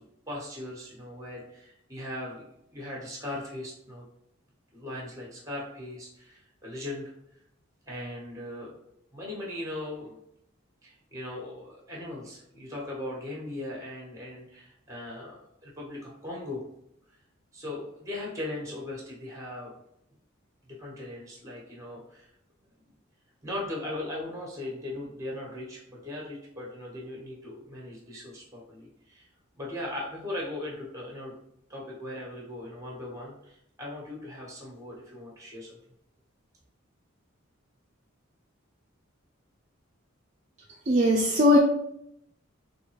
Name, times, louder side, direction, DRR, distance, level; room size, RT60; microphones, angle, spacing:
voice 1, 0.0-2.4 2.7-4.0 4.7-7.1 7.9-8.7 9.1-10.2 10.8-16.6 17.5-19.7 20.8-22.3 23.4-29.3 29.6-31.3 31.7-35.8, left 1 dB, 15° right, -3 dB, 1.4 m, -39 dB
voice 2, 40.9-41.6, left 1 dB, 35° right, -1 dB, 0.4 m, -20 dB
3.9 x 3.5 x 3.1 m, 0.78 s
head